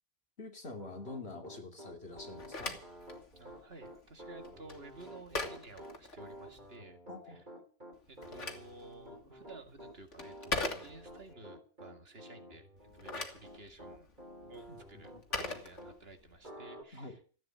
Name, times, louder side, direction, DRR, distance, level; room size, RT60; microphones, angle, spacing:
voice 1, 0.4-2.8 7.1-7.4 14.7-15.2 16.9-17.2, left 3 dB, 60° left, 4 dB, 3.0 m, -46 dB
Piano, 0.8-16.0 16.4-16.8, equal, 40° right, 3.2 m, -51 dB
Telephone, 2.2-6.7 7.9-11.3 12.8-16.4, left 3 dB, 85° left, 2.5 m, -42 dB
voice 2, 3.4-7.0 7.2-7.4 8.1-12.7 12.9-14.1 14.5-17.2, right 2 dB, 55° right, 6 dB, 2.3 m, -53 dB
15.0 x 9.0 x 8.8 m, 0.42 s
omnidirectional pair, 1.2 m